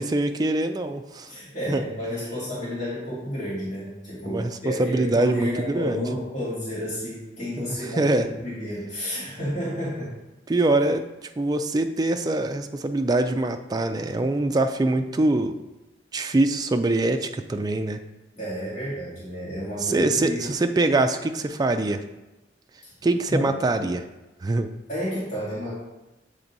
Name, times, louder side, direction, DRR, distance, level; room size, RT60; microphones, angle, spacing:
voice 1, 0.0-1.3 1.7-1.8 4.3-4.5 4.8-6.0 7.6-8.3 10.5-11.1 11.4-15.6 16.1-18.0 19.8-22.0 23.0-24.0 24.4-24.7, right 2 dB, 20° right, 7 dB, 0.3 m, -23 dB
voice 2, 1.3-10.1 18.3-20.5 22.8-22.9 23.3-23.6 24.9-25.7, equal, 40° left, -9 dB, 2.1 m, -31 dB
7.3 x 3.4 x 4.0 m, 1.0 s
head